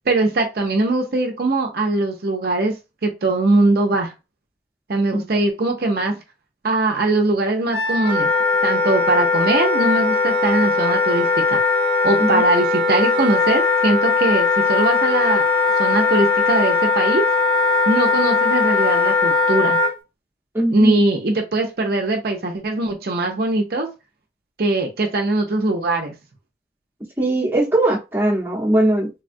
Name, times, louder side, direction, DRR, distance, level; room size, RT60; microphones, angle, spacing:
voice 1, 0.1-2.7 3.0-4.1 4.9-6.2 6.6-8.3 8.6-11.6 12.0-15.4 15.8-17.3 17.9-19.8 20.7-23.9 24.6-26.1, right 2 dB, 55° right, 0.5 m, -21 dB
Wind instrument woodwind instrument, 7.7-19.9, left 4 dB, 30° left, 0.9 m, -19 dB
voice 2, 20.5-21.0 27.2-29.1, right 1 dB, 10° right, 0.8 m, -19 dB
3.4 x 2.3 x 2.5 m
head